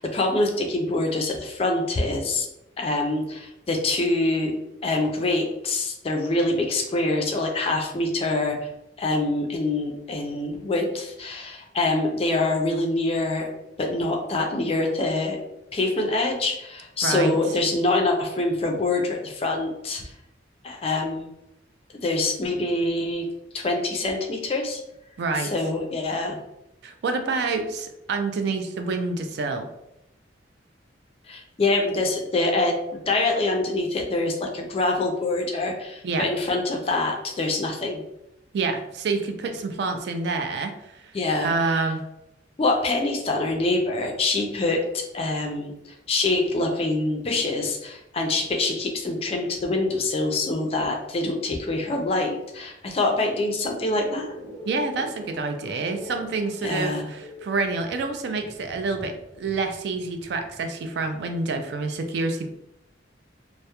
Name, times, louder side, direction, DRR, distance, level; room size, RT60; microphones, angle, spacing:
voice 1, 0.0-2.5 2.8-4.5 4.8-8.7 9.0-13.5 13.8-15.4 15.7-20.0 20.6-21.3 22.0-23.3 23.5-24.8 25.4-26.4 31.3-32.7 33.1-38.0 41.1-41.8 42.6-45.7 46.1-54.3 56.6-57.1, left 2 dB, 30° left, 2 dB, 0.3 m, -25 dB
voice 2, 17.0-17.4 25.2-25.5 26.8-29.7 36.0-36.3 38.5-41.1 41.4-42.0 54.7-62.5, right 3 dB, 60° right, 5 dB, 0.3 m, -27 dB
sound 1, 53.3-61.9, left 1 dB, 80° right, 0.7 m, -44 dB
2.2 x 2.0 x 2.8 m, 0.86 s
head